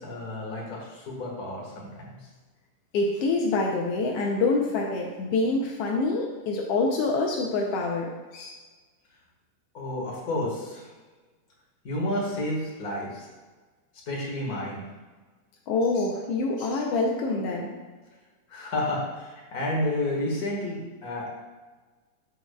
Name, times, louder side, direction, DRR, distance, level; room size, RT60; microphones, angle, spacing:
voice 1, 0.0-2.1 9.7-10.9 11.8-13.3 14.1-14.8 18.5-21.3, left 1 dB, 40° left, -3 dB, 1.5 m, -31 dB
voice 2, 2.9-8.5 15.7-17.7, left 3 dB, 90° left, 0 dB, 1.3 m, -26 dB
13.0 x 4.6 x 2.3 m, 1.3 s
omnidirectional pair, 3.6 m